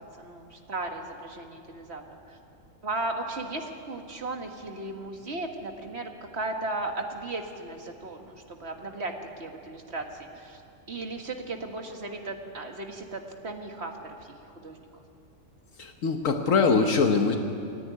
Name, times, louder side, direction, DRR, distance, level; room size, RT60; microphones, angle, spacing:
voice 1, 0.0-2.4 2.8-10.6 10.9-14.8, right 2 dB, 50° right, 4 dB, 1.9 m, -36 dB
voice 2, 15.8-17.4, left 4 dB, 70° left, 5 dB, 1.4 m, -23 dB
28.0 x 9.9 x 9.3 m, 2.6 s
omnidirectional pair, 1.4 m